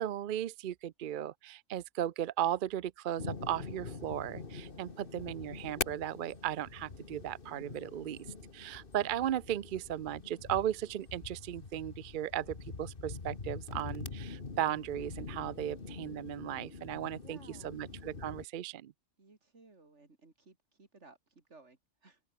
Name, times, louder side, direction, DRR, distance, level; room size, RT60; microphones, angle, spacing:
voice 1, 0.0-8.2 8.5-18.9, right 11 dB, 55° right, 0.6 m, -36 dB
sound 1, 3.2-18.4, left 4 dB, 50° left, 2.1 m, -44 dB
voice 2, 17.2-17.8 19.2-22.2, right 3 dB, 75° right, 3.4 m, -59 dB
open air
omnidirectional pair, 1.2 m